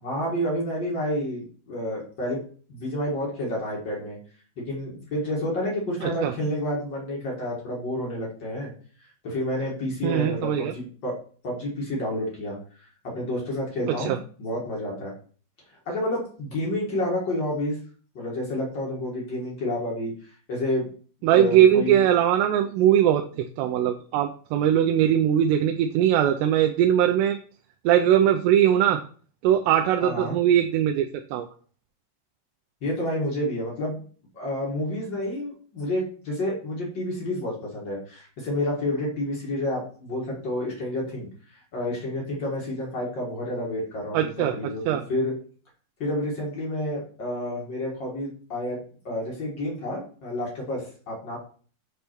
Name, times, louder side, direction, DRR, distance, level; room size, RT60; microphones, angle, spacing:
voice 1, 0.0-2.4 2.7-4.2 4.6-8.7 9.0-11.1 11.4-15.1 15.7-17.8 18.1-20.9 21.3-22.0 30.0-30.4 32.8-34.0 34.3-45.3 46.0-48.8 49.0-51.4, left 1 dB, 50° left, -3 dB, 1.3 m, -29 dB
voice 2, 6.0-6.3 10.0-10.7 14.1-14.2 21.2-27.4 27.9-29.0 29.4-31.1 31.3-31.5 44.1-44.5 44.9-45.0, right 10 dB, 90° right, 4 dB, 2.7 m, -20 dB
8.0 x 3.5 x 4.3 m, 0.43 s
omnidirectional pair, 4.7 m